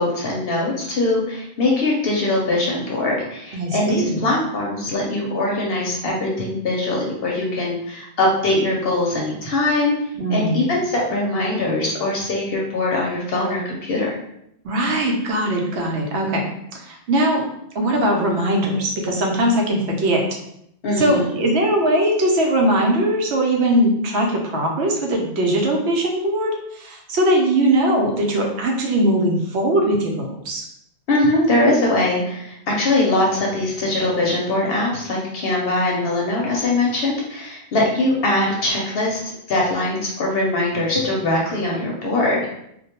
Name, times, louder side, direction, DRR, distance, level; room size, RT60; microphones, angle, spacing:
voice 1, 0.0-9.9 10.3-14.1 20.8-21.3 31.1-39.2 39.5-42.4, left 2 dB, 65° left, -2 dB, 0.8 m, -21 dB
voice 2, 3.5-4.2 10.2-10.6 14.6-17.4 17.7-20.2 21.0-30.7, right 1 dB, 80° right, 0 dB, 0.9 m, -20 dB
2.2 x 2.1 x 2.8 m, 0.74 s
omnidirectional pair, 1.1 m